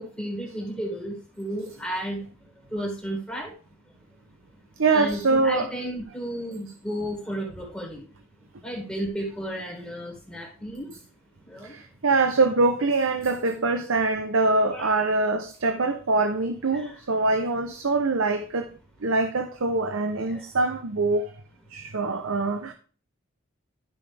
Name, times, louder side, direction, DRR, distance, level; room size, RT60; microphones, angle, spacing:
voice 1, 0.0-2.2 2.7-3.5 4.9-8.1 8.6-10.9 11.5-11.7 14.7-14.9 16.7-17.0 20.2-20.4, equal, 5° left, 1.9 m, -33 dB
voice 2, 4.8-5.7 11.6-18.7 19.0-21.3 21.7-22.7, right 3 dB, 90° right, 0.8 m, -24 dB
12.5 x 5.9 x 3.4 m
head